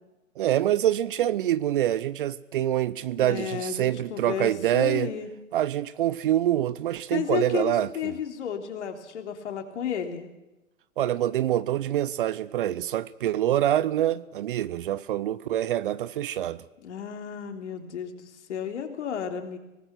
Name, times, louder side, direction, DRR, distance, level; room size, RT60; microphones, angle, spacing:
voice 1, 0.4-5.1 5.5-8.1 11.0-16.6, right 12 dB, 40° right, 0.7 m, -25 dB
voice 2, 3.2-5.3 7.1-10.3 16.8-19.6, left 8 dB, 55° left, 3.4 m, -32 dB
25.5 x 19.5 x 6.0 m
figure-of-eight pair, 125°, 41 cm